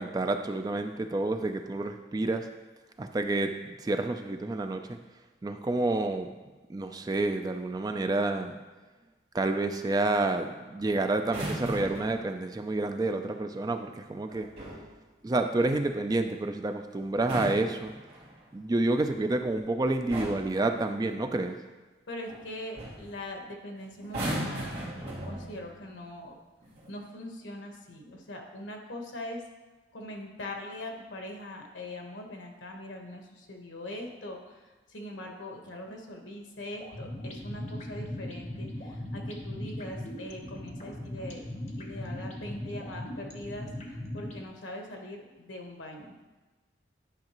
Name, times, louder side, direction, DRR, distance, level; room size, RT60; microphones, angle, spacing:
voice 1, 0.0-2.5 3.0-5.0 5.4-6.3 6.7-8.6 9.3-14.5 15.2-17.9 18.5-21.6, right 2 dB, 20° right, 6 dB, 0.3 m, -29 dB
sound 1, 11.2-12.2 14.3-14.9 17.1-18.4 19.5-19.7 20.1-20.6 22.3-22.5 22.8-23.1 24.0-25.7 26.6-26.9, right 1 dB, 55° right, 2.1 m, -36 dB
voice 2, 22.1-24.7 25.0-26.3 26.9-29.4 29.9-41.4 41.8-46.3, left 1 dB, 85° left, 2 dB, 1.2 m, -42 dB
sound 2, 36.8-44.4, left 1 dB, 40° left, 1.0 m, -39 dB
10.5 x 5.6 x 3.0 m, 1.2 s
head